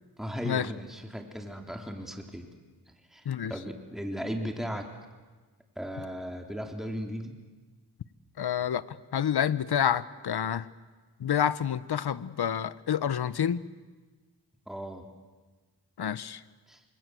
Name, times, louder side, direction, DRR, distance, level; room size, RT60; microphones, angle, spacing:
voice 1, 0.2-2.5 3.1-4.9 5.8-7.4 14.7-15.1 16.7-16.8, equal, ahead, 3 dB, 3.4 m, -36 dB
voice 2, 8.4-8.8 9.1-10.7 11.2-13.6 16.0-16.4, left 9 dB, 70° left, 16 dB, 1.1 m, -28 dB
28.0 x 26.0 x 7.8 m, 1.3 s
cardioid pair, 65°, 40 cm